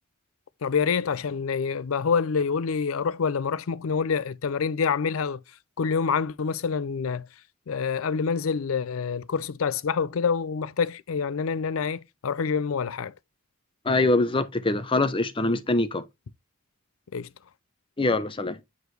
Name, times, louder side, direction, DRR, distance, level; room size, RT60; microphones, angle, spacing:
voice 1, 0.6-5.4 5.8-7.2 7.7-13.1 17.1-17.3, left 6 dB, 85° left, 0.5 m, -27 dB
voice 2, 13.8-16.0 18.0-18.6, left 2 dB, 25° left, 0.7 m, -24 dB
7.8 x 4.9 x 3.2 m
head